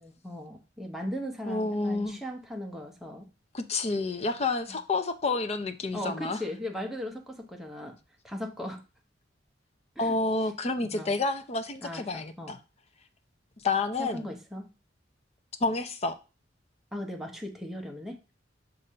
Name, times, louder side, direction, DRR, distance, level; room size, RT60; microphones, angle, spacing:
voice 1, 0.0-3.2 5.9-8.0 8.2-8.8 10.0-10.1 10.8-11.2 11.8-12.6 14.0-14.7 16.9-18.3, equal, ahead, 2 dB, 0.9 m, -38 dB
voice 2, 1.5-2.2 3.5-6.4 10.0-12.6 13.6-14.3 15.6-16.2, left 3 dB, 35° left, 8 dB, 0.6 m, -29 dB
6.7 x 2.7 x 5.5 m, 0.31 s
head